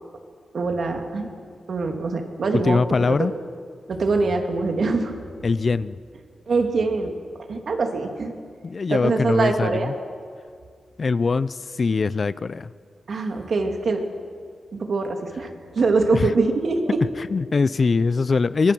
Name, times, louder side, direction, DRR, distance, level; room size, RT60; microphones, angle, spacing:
voice 1, 0.5-1.3 1.7-2.8 3.1-3.3 3.9-5.2 6.5-7.1 7.5-8.3 8.9-9.9 13.1-14.1 14.8-17.0, right 3 dB, 55° right, 4 dB, 2.6 m, -23 dB
voice 2, 2.5-3.3 5.4-6.0 8.6-9.9 11.0-12.7 16.1-16.3 17.2-18.7, left 4 dB, 40° left, 17 dB, 0.5 m, -22 dB
24.5 x 22.0 x 6.1 m, 2.1 s
wide cardioid pair, 115°, 0 cm